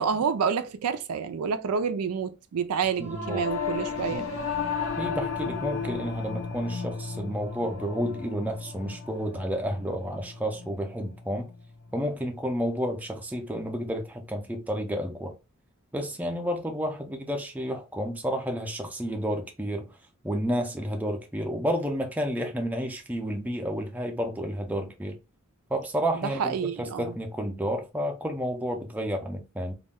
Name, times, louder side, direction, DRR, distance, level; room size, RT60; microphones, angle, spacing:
voice 1, 0.0-4.3 26.1-27.1, right 6 dB, 85° right, 0.4 m, -28 dB
Singing / Musical instrument, 3.0-12.5, left 5 dB, 65° left, 0.6 m, -34 dB
voice 2, 3.1-3.4 4.1-4.3 5.0-11.5 11.9-15.3 15.9-19.9 20.2-25.2 25.7-29.7, equal, 5° right, 0.4 m, -31 dB
2.3 x 2.1 x 3.4 m
head